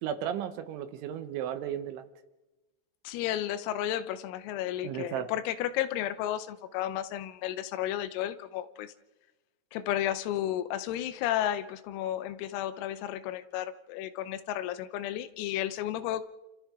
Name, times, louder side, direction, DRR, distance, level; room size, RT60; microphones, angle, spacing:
voice 1, 0.0-2.0 4.8-5.3, right 10 dB, 75° right, 10 dB, 3.0 m, -34 dB
voice 2, 3.1-8.9 9.7-16.3, left 12 dB, 85° left, 13 dB, 3.6 m, -33 dB
29.5 x 26.0 x 3.7 m, 1.1 s
omnidirectional pair, 5.9 m